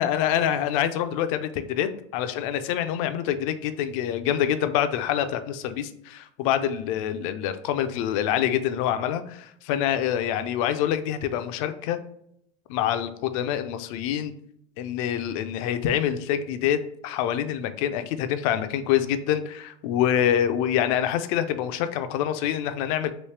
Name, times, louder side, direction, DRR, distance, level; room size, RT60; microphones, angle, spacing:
voice 1, 0.0-12.0 12.7-14.3 14.8-23.1, left 10 dB, 70° left, 10 dB, 0.4 m, -26 dB
3.1 x 3.0 x 3.2 m, 0.70 s
supercardioid pair, 130°, 18 cm